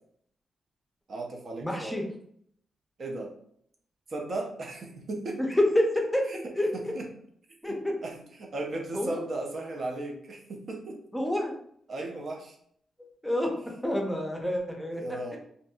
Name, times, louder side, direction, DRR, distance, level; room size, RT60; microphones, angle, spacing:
voice 1, 1.1-2.1 3.0-3.3 4.1-5.4 6.3-7.1 7.7-11.0 11.9-12.6 14.9-15.4, right 2 dB, 55° right, 1 dB, 0.5 m, -36 dB
voice 2, 1.6-2.0 5.4-6.2 6.6-6.9 7.6-7.9 8.9-9.2 11.1-11.5 13.0-13.5 13.8-15.4, left 1 dB, 5° left, 1 dB, 0.6 m, -28 dB
2.6 x 2.5 x 2.3 m, 0.66 s
cardioid pair, 75°, 0 cm